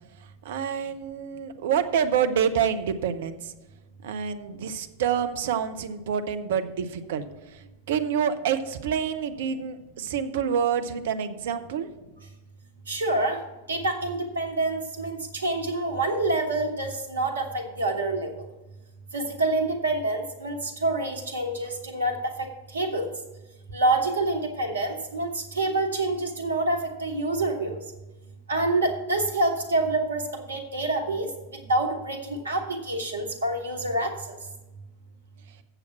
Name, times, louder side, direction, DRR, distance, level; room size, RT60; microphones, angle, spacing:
voice 1, 0.4-3.5 4.0-11.9, right 8 dB, 55° right, 10 dB, 0.6 m, -27 dB
voice 2, 12.9-13.4 13.7-18.5 19.1-23.1 23.7-27.8 28.5-34.4, right 2 dB, 70° right, 5 dB, 1.3 m, -27 dB
7.9 x 7.1 x 5.7 m, 1.1 s
figure-of-eight pair, 90°, 0 cm